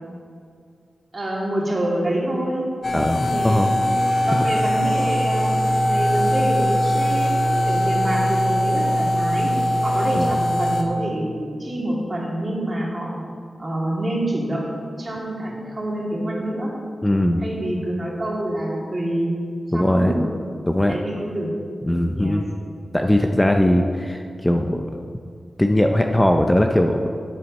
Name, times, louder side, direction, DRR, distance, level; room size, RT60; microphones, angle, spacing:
voice 1, 1.1-2.6 3.3-3.7 4.2-9.5 9.8-13.2 13.6-14.7 15.0-16.7 17.4-19.3 19.7-20.3 20.9-21.5 22.1-22.4, right 1 dB, 35° right, -3 dB, 2.3 m, -26 dB
sound 1, 2.8-10.8, equal, 55° left, 1.0 m, -21 dB
voice 2, 2.9-3.7 4.3-4.4 10.2-10.3 17.0-17.4 19.7-20.1 20.7-20.9 21.9-22.5 22.9-24.9 25.6-27.1, left 1 dB, 10° left, 4 dB, 0.5 m, -19 dB
8.4 x 7.4 x 5.3 m, 2.3 s
wide cardioid pair, 90°, 0 cm